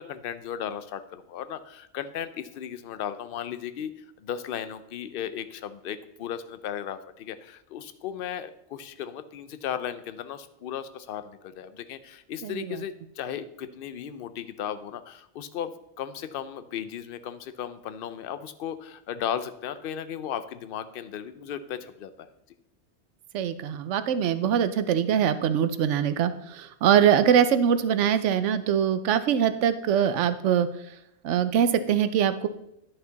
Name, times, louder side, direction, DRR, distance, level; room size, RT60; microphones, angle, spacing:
voice 1, 0.0-15.7 16.0-22.3, left 9 dB, 60° left, 12 dB, 0.7 m, -36 dB
voice 2, 12.4-12.8 23.3-30.7 31.2-32.5, right 9 dB, 90° right, 12 dB, 0.9 m, -23 dB
10.5 x 5.6 x 3.9 m, 0.79 s
omnidirectional pair, 1.2 m